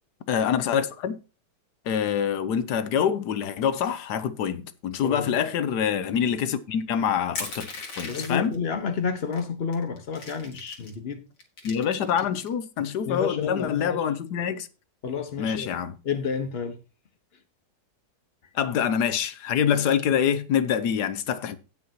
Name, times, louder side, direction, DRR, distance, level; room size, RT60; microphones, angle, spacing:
voice 1, 0.3-1.2 1.9-7.7 8.0-8.5 11.6-14.7 15.4-16.0 18.5-21.6, left 8 dB, 75° left, 1.3 m, -25 dB
Crushing, 7.4-8.6 9.3-9.4 9.7-11.0 11.4-12.5, left 3 dB, 90° left, 2.5 m, -37 dB
voice 2, 8.1-11.2 12.2-12.3 13.0-14.0 15.0-15.7 16.0-16.8, left 5 dB, 40° left, 1.3 m, -30 dB
17.0 x 5.8 x 2.9 m
omnidirectional pair, 1.9 m